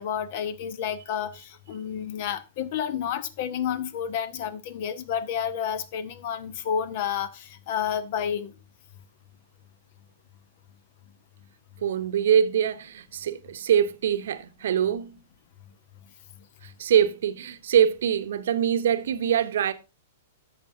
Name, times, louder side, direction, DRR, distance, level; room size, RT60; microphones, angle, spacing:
voice 1, 0.0-8.5, left 8 dB, 50° left, 0.9 m, -30 dB
voice 2, 11.8-15.2 16.8-19.7, right 9 dB, 65° right, 0.8 m, -23 dB
14.0 x 5.9 x 2.7 m
figure-of-eight pair, 105°, 0 cm